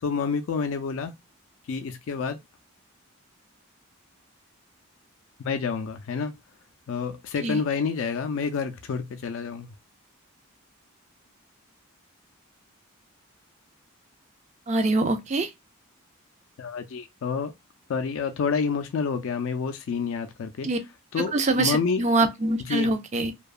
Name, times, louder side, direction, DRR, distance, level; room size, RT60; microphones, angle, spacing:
voice 1, 0.0-1.1 1.7-2.4 5.4-6.3 6.9-9.7 16.6-17.5 17.9-20.7 21.1-22.1 22.6-22.9, left 5 dB, 60° left, 0.3 m, -28 dB
voice 2, 14.7-15.5 20.6-20.8 21.3-23.3, right 2 dB, 30° right, 0.4 m, -24 dB
2.7 x 2.2 x 2.3 m
head